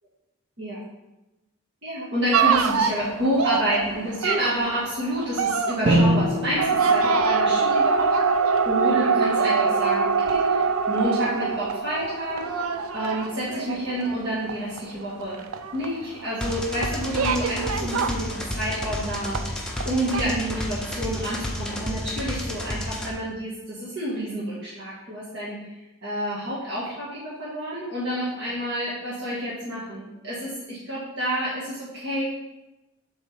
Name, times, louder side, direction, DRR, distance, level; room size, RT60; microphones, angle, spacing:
voice 1, 1.8-8.2 8.6-12.4 12.9-15.4 15.7-25.6 26.0-32.2, equal, 55° right, -9 dB, 1.7 m, -29 dB
sound 1, 2.3-19.0 19.3-19.9 20.1-20.2, right 5 dB, 80° right, 0.5 m, -24 dB
Drum, 5.9-8.4, right 1 dB, 35° right, 1.1 m, -24 dB
sound 2, 16.4-23.1, left 1 dB, 5° left, 0.7 m, -31 dB
7.4 x 3.5 x 5.1 m, 1.0 s
head